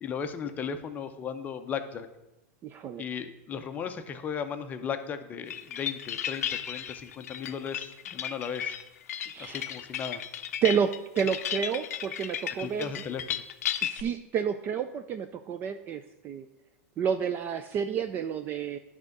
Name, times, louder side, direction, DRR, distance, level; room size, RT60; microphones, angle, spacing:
voice 1, 0.0-2.1 3.0-8.8 9.4-10.2 12.6-13.4, left 7 dB, 20° left, 8 dB, 0.6 m, -36 dB
voice 2, 2.6-3.0 9.3-9.7 10.6-12.9 13.8-16.5 17.0-18.8, right 7 dB, 25° right, 9 dB, 0.3 m, -30 dB
sound 1, 5.5-14.0, left 10 dB, 90° left, 0.5 m, -34 dB
10.5 x 3.6 x 6.6 m, 0.98 s
supercardioid pair, 150°, 8 cm